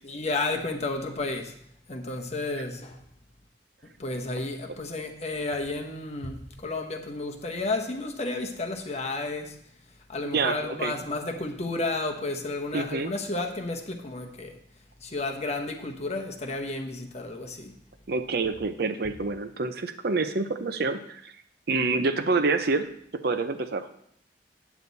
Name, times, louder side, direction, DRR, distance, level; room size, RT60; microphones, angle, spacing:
voice 1, 0.0-1.5 1.9-3.0 4.0-9.6 10.1-14.5 15.0-17.7, left 2 dB, 40° left, 1.1 m, -32 dB
voice 2, 10.3-10.9 12.7-13.1 18.1-21.3 21.7-23.9, right 3 dB, 60° right, 0.7 m, -27 dB
8.4 x 8.3 x 4.1 m
head